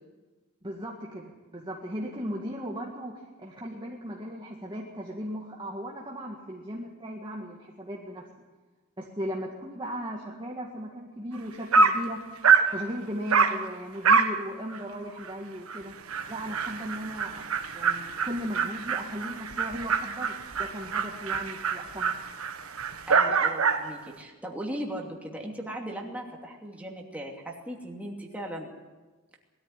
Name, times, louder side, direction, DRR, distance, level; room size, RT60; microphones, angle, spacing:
voice 1, 0.6-8.2 9.0-12.2 12.7-15.9 16.3-17.4 17.7-22.1, equal, 20° right, -2 dB, 1.9 m, -37 dB
Dog, 11.3-11.4 11.7-12.0 12.4-12.7 13.3-13.6 14.0-14.4 14.7-14.8 15.2-15.3 15.7-15.8 16.1-23.9, right 5 dB, 90° right, 1.4 m, -25 dB
voice 2, 23.1-28.7, equal, 5° right, -1 dB, 2.7 m, -38 dB
20.5 x 14.0 x 9.9 m, 1.3 s
head